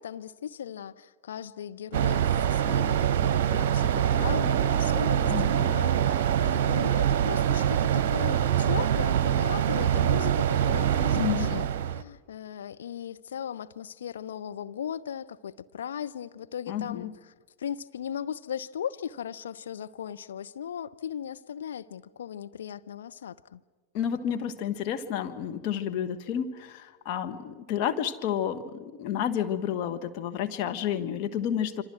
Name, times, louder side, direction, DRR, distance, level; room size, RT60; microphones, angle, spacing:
voice 1, 0.0-17.1 17.6-23.6, left 9 dB, 65° left, 0.8 m, -37 dB
sound 1, 1.9-12.0, right 10 dB, 50° right, 0.9 m, -24 dB
voice 2, 5.2-5.8 11.1-11.7 16.7-17.1 23.9-31.8, left 9 dB, 45° left, 1.5 m, -30 dB
sound 2, 6.3-7.7 11.2-11.6 12.7-12.8, right 1 dB, 5° left, 2.0 m, -48 dB
26.5 x 26.0 x 6.3 m
figure-of-eight pair, 90°, 0 cm